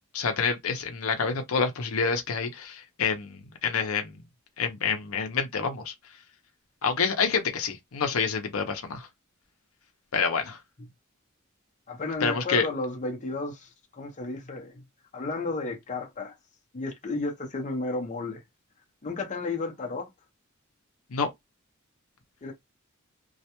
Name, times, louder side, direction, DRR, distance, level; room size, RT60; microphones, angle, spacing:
voice 1, 0.1-4.2 4.6-5.9 6.8-9.1 10.1-10.6 12.2-12.7 21.1-21.3, left 5 dB, 90° left, 0.6 m, -27 dB
voice 2, 11.9-14.8 15.1-16.3 16.7-18.4 19.0-20.1 22.4-22.5, left 3 dB, 35° left, 0.7 m, -33 dB
2.3 x 2.1 x 2.9 m
head